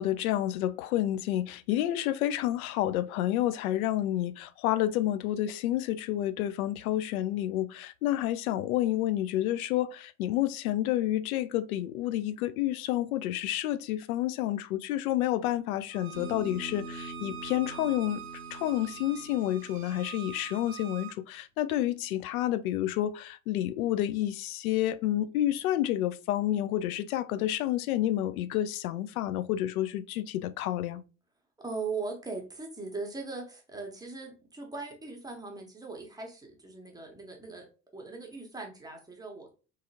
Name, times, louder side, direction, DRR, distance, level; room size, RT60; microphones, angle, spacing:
voice 1, 0.0-18.2 18.5-31.0, left 13 dB, 60° left, 0.5 m, -29 dB
Bowed string instrument, 15.9-21.2, right 11 dB, 25° right, 0.5 m, -45 dB
Bass guitar, 16.1-20.5, right 1 dB, 25° left, 1.3 m, -44 dB
voice 2, 31.6-37.6 37.9-39.5, right 4 dB, 10° right, 1.1 m, -39 dB
3.4 x 3.3 x 2.8 m
figure-of-eight pair, 65°, 49 cm